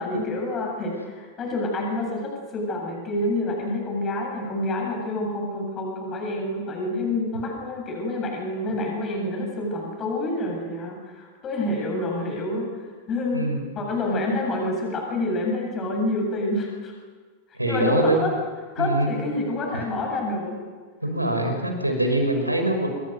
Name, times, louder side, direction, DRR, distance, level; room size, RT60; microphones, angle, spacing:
voice 1, 0.0-12.7 13.1-16.9 17.5-18.3 18.7-20.6, left 2 dB, 25° left, 1 dB, 7.9 m, -27 dB
voice 2, 17.6-18.2 18.8-19.1 21.0-22.9, right 1 dB, 85° right, 4 dB, 5.8 m, -23 dB
27.5 x 23.5 x 8.0 m, 1.5 s
figure-of-eight pair, 90°, 0 cm